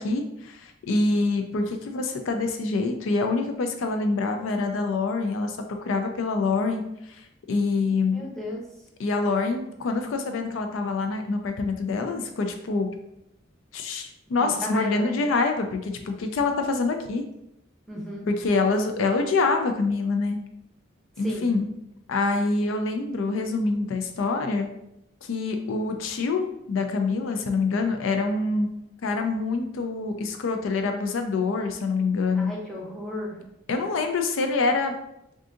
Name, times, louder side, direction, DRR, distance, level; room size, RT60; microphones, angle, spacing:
voice 1, 0.0-6.8 7.5-8.2 9.0-12.9 13.7-17.2 18.3-20.4 21.2-21.7 22.1-24.7 25.3-28.7 29.0-32.5 33.7-34.9, left 3 dB, 85° left, 5 dB, 0.4 m, -25 dB
voice 2, 8.1-8.6 14.4-15.2 17.9-18.3 21.2-21.5 32.3-33.4, left 1 dB, ahead, -5 dB, 0.6 m, -34 dB
3.6 x 2.6 x 2.5 m, 0.81 s
head